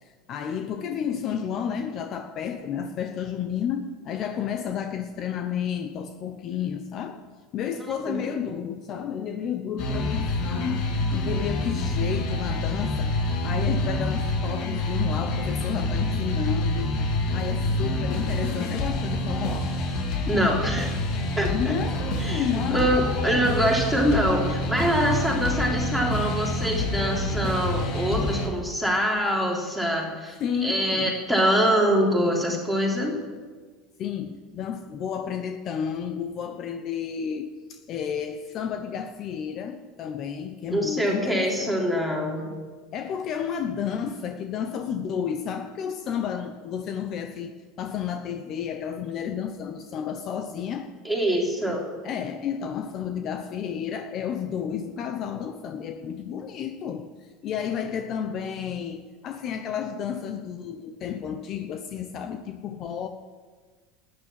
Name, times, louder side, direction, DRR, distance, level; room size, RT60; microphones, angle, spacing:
voice 1, 0.0-7.2 7.5-13.1 13.4-17.0 17.3-19.7 21.5-23.7 30.4-31.2 34.0-41.7 42.9-50.9 51.7-63.1, left 8 dB, 40° left, 7 dB, 0.9 m, -31 dB
voice 2, 7.9-8.2 20.3-20.9 21.4-21.7 22.2-22.4 22.7-33.2 40.7-42.5 51.0-51.8, equal, ahead, -2 dB, 3.5 m, -24 dB
sound 1, 9.8-28.5, left 1 dB, 60° left, 3.3 m, -27 dB
13.0 x 9.8 x 9.8 m, 1.5 s
supercardioid pair, 135°, 0 cm